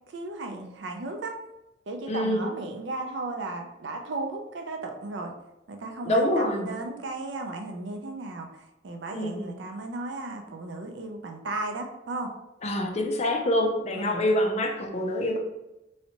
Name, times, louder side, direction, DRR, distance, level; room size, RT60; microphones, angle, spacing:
voice 1, 0.1-1.4 1.9-5.3 5.7-12.3 13.9-14.2, right 2 dB, 70° right, 4 dB, 0.5 m, -35 dB
voice 2, 2.1-2.5 6.1-6.7 9.1-9.5 12.6-15.4, left 1 dB, 35° left, 2 dB, 0.5 m, -26 dB
3.2 x 2.7 x 2.9 m, 0.94 s
head